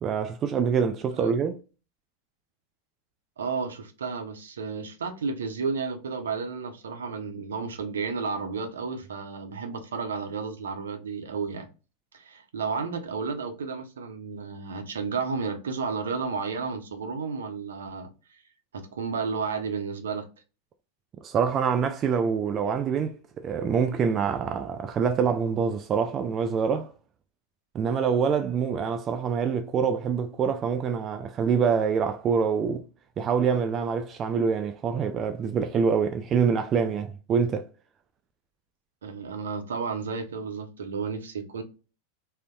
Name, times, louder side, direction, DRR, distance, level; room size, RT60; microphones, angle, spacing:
voice 1, 0.0-1.6 21.2-26.9 27.7-32.8 33.2-37.7, right 6 dB, 30° right, 0.3 m, -25 dB
voice 2, 3.4-11.7 12.1-18.4 18.7-20.3 39.0-41.6, right 5 dB, 65° right, 0.6 m, -32 dB
3.9 x 2.1 x 2.2 m
figure-of-eight pair, 90°, 0 cm